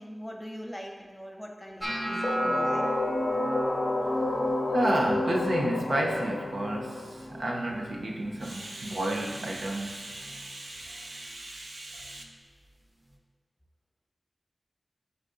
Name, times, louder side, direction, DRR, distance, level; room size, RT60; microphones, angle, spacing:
voice 1, 0.0-2.9, equal, 5° left, 1 dB, 1.0 m, -41 dB
sound 1, 1.8-7.9 8.2-8.7 9.0-9.6 10.2-10.4 12.2-12.3, right 1 dB, 20° right, 1.2 m, -36 dB
sound 2, 2.2-8.0, left 2 dB, 65° left, 0.5 m, -30 dB
voice 2, 4.7-12.2, right 1 dB, 80° right, 0 dB, 0.8 m, -31 dB
11.5 x 4.0 x 2.7 m, 1.4 s
wide cardioid pair, 70°, 0 cm